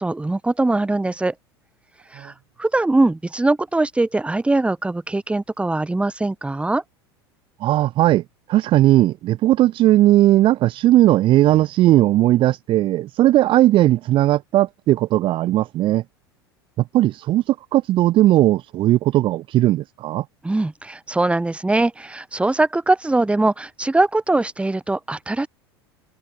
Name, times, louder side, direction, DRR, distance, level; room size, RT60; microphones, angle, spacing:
voice 1, 0.0-1.3 2.1-2.3 2.6-6.8 20.4-25.5, right 2 dB, 10° right, 5.0 m, -21 dB
voice 2, 7.6-8.2 8.5-16.0 16.9-20.2, right 14 dB, 40° right, 1.4 m, -17 dB
figure-of-eight pair, 80°, 13 cm